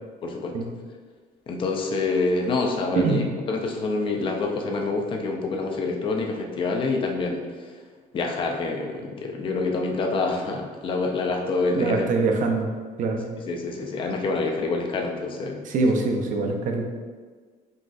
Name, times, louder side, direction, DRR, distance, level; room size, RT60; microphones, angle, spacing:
voice 1, 0.2-0.5 1.5-7.4 8.1-12.0 13.4-15.6, left 3 dB, 30° left, 1 dB, 0.4 m, -26 dB
voice 2, 11.7-12.7 13.0-13.3 15.7-16.9, right 3 dB, 55° right, 3 dB, 0.5 m, -23 dB
3.9 x 2.4 x 2.4 m, 1.5 s
cardioid pair, 130°, 16 cm